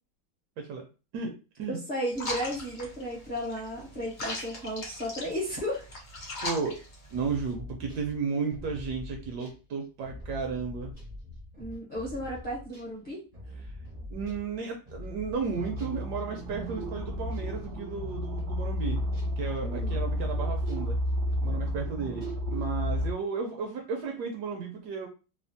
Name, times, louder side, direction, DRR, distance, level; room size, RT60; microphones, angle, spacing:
voice 1, 0.6-0.9 1.1-1.8 6.4-6.8 7.1-10.9 14.1-19.0 19.4-21.0 21.4-25.1, right 5 dB, 70° right, 2 dB, 1.0 m, -34 dB
voice 2, 1.7-5.8 11.6-13.2 19.6-20.0, equal, 40° left, -6 dB, 0.6 m, -34 dB
sound 1, 2.1-7.5, left 2 dB, 80° left, 0.4 m, -39 dB
sound 2, 7.1-16.0 16.4-23.1, left 2 dB, 50° right, 0.4 m, -44 dB
sound 3, 15.6-23.1, equal, 90° right, 1.4 m, -31 dB
3.3 x 2.0 x 2.5 m, 0.32 s
omnidirectional pair, 2.0 m